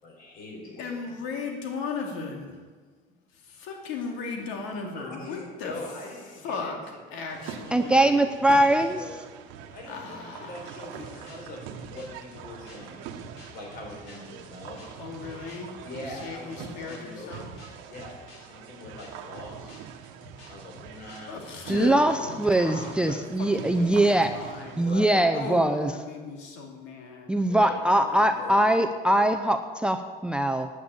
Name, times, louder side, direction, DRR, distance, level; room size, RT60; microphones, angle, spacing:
voice 1, 0.0-1.2 4.9-7.0 7.4-9.2 9.7-13.2 13.5-14.8 15.8-17.4 17.8-19.8 20.5-21.3 21.7-22.5 24.7-25.2 27.4-28.6, left 1 dB, 50° left, 0 dB, 4.4 m, -43 dB
voice 2, 0.8-2.6 3.3-5.8 6.4-6.8 7.1-8.1 9.9-11.0 15.0-17.5 21.3-24.0 24.3-24.8 25.3-27.3 28.0-28.6, left 4 dB, 90° left, 1 dB, 2.4 m, -37 dB
sound 1, 7.3-24.9, right 8 dB, 85° right, 1.2 m, -43 dB
voice 3, 7.7-9.0 21.7-22.1 22.4-24.3 24.8-25.9 27.3-30.7, right 1 dB, 5° right, 8 dB, 0.5 m, -22 dB
sound 2, 10.9-22.1, left 1 dB, 70° left, 5.3 m, -50 dB
9.6 x 9.6 x 8.6 m, 1.4 s
cardioid pair, 155°, 19 cm